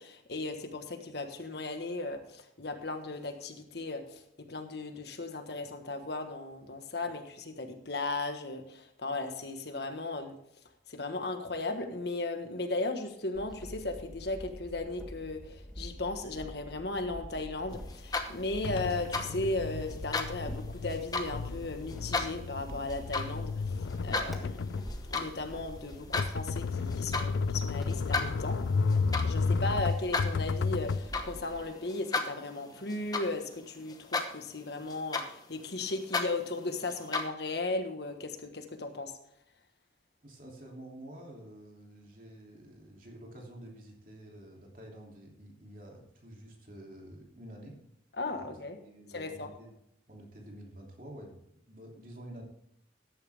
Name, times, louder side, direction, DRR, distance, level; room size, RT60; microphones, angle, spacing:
voice 1, 0.0-4.2 4.5-10.4 10.9-23.7 24.0-28.6 29.2-39.1 48.2-48.8 49.1-49.5, left 2 dB, 60° left, 6 dB, 1.4 m, -36 dB
sound 1, 13.3-31.6, equal, ahead, 1.5 m, -47 dB
sound 2, 17.9-18.5 18.9-19.3 19.9-20.3 20.9-21.3 21.9-22.3 22.9-23.3 23.7-24.3 24.8-25.3 25.6-26.3 26.9-27.3 27.9-33.6 33.9-34.5 34.9-37.2, left 3 dB, 20° left, 1.0 m, -35 dB
sound 3, 18.6-31.0, left 4 dB, 85° left, 0.4 m, -33 dB
voice 2, 40.2-47.8 48.3-48.5 48.8-49.7 50.1-51.4 51.7-52.4, right 1 dB, 45° right, 0 dB, 3.0 m, -49 dB
14.0 x 10.5 x 3.5 m, 0.75 s
head